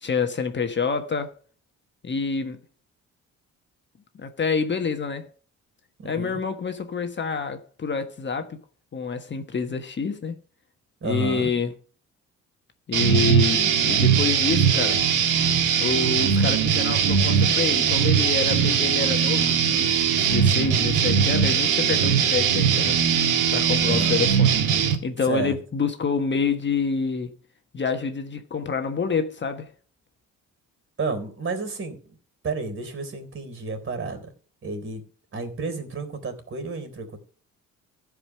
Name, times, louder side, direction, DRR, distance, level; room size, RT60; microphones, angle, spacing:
voice 1, 0.0-1.4 2.0-2.6 4.1-5.3 6.0-8.6 8.9-10.4 11.0-11.7 12.9-15.0 15.8-23.0 23.5-24.6 25.0-27.3 27.7-29.7, left 5 dB, 40° left, 1.4 m, -27 dB
voice 2, 6.0-6.4 11.0-11.5 23.8-24.3 25.3-25.6 31.0-32.0 32.4-34.3 34.6-35.0 35.3-37.2, right 3 dB, 40° right, 3.9 m, -31 dB
sound 1, 12.9-25.0, right 7 dB, 85° right, 1.8 m, -20 dB
15.0 x 5.1 x 5.9 m
cardioid pair, 90°, 30 cm